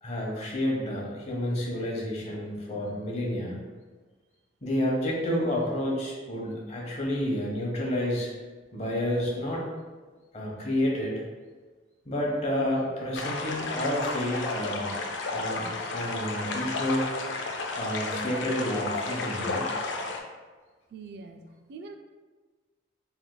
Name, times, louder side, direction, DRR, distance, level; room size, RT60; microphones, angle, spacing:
voice 1, 0.0-3.6 4.6-8.3 8.7-9.7 10.3-11.1 12.1-14.9 15.3-17.1 17.8-19.7, left 1 dB, 35° left, -3 dB, 0.8 m, -30 dB
sound 1, 13.1-20.2, left 3 dB, 70° left, 0.5 m, -32 dB
voice 2, 20.9-22.0, right 4 dB, 55° right, 5 dB, 0.3 m, -44 dB
4.6 x 3.4 x 2.2 m, 1.3 s
head